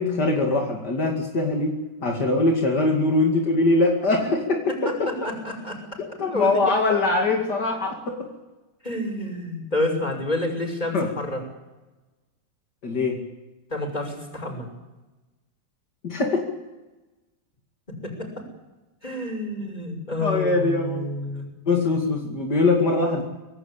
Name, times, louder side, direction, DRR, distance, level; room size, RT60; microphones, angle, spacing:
voice 1, 0.0-5.1 6.2-8.2 10.9-11.1 12.8-13.2 16.0-16.5 20.2-21.1 21.7-23.2, left 2 dB, 65° left, 0 dB, 3.1 m, -22 dB
voice 2, 5.2-5.8 6.3-7.1 8.8-11.4 13.7-14.7 18.0-18.3 19.0-21.7, left 1 dB, 25° left, 2 dB, 6.1 m, -29 dB
25.0 x 18.0 x 8.5 m, 1.1 s
omnidirectional pair, 1.9 m